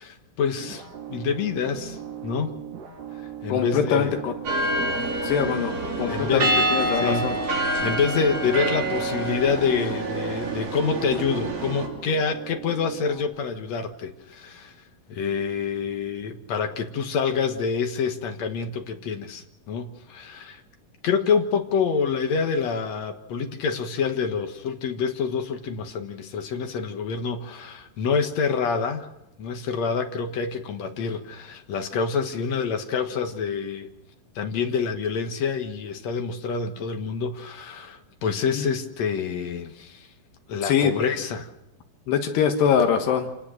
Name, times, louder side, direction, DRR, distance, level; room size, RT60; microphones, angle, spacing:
voice 1, 0.0-2.5 3.4-4.2 5.0-5.3 6.1-6.7 6.9-7.3 7.6-14.8 15.1-20.6 21.0-29.1 29.4-33.9 34.4-40.1 40.5-41.5, left 6 dB, 60° left, 6 dB, 1.9 m, -27 dB
sound 1, 0.6-13.2, right 9 dB, 75° right, 4.2 m, -39 dB
voice 2, 3.5-4.3 5.2-5.7 6.0-7.3 38.6-38.7 40.6-40.9 42.1-43.3, left 7 dB, 80° left, 5 dB, 3.5 m, -23 dB
sound 2, 4.4-11.9, right 1 dB, 40° right, 4.2 m, -27 dB
27.5 x 18.5 x 6.5 m, 0.89 s
omnidirectional pair, 4.8 m